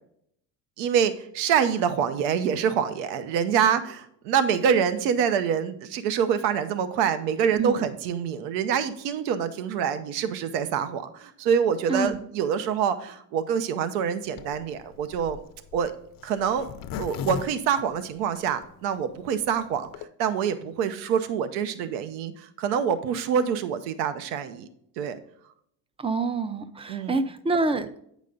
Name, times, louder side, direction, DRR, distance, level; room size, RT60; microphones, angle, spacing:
voice 1, 0.8-15.4 15.7-15.9 16.2-16.7 17.0-24.7 25.0-25.2 26.9-27.1, right 7 dB, 80° right, 11 dB, 0.9 m, -26 dB
voice 2, 7.5-7.9 11.9-12.2 26.0-28.0, right 3 dB, 15° right, 12 dB, 0.4 m, -27 dB
Zipper (clothing), 14.3-18.6 19.1-19.2 19.4-19.5 19.7-20.1, left 7 dB, 45° left, 0.6 m, -37 dB
8.6 x 5.2 x 3.8 m, 0.70 s
supercardioid pair, 100°, 50 cm